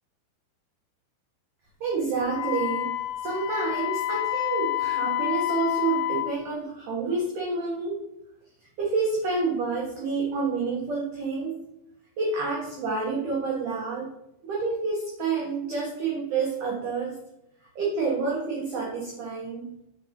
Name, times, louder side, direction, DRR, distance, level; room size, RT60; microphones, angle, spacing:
voice 1, 1.8-2.9 3.2-8.0 8.8-11.6 12.2-14.1 14.4-17.2 17.8-19.7, right 4 dB, 75° right, -3 dB, 1.8 m, -28 dB
Wind instrument woodwind instrument, 2.3-6.3, left 14 dB, 90° left, 3.0 m, -28 dB
8.9 x 4.9 x 3.6 m, 0.85 s
omnidirectional pair, 5.4 m